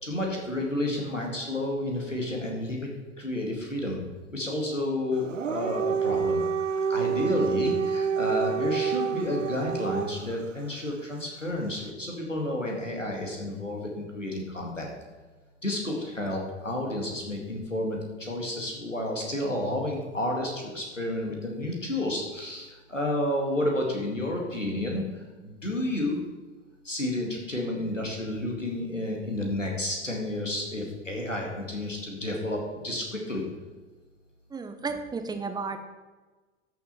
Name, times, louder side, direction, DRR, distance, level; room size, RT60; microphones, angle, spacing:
voice 1, 0.0-2.9 3.2-4.0 4.3-6.4 6.9-14.9 15.6-25.0 25.4-26.2 26.8-33.4, left 1 dB, 90° left, 0 dB, 2.3 m, -31 dB
Dog, 5.2-10.4, right 6 dB, 85° right, 0.6 m, -28 dB
voice 2, 34.5-35.8, right 4 dB, 10° right, 7 dB, 0.9 m, -33 dB
13.5 x 6.7 x 4.3 m, 1.3 s
figure-of-eight pair, 90°, 37 cm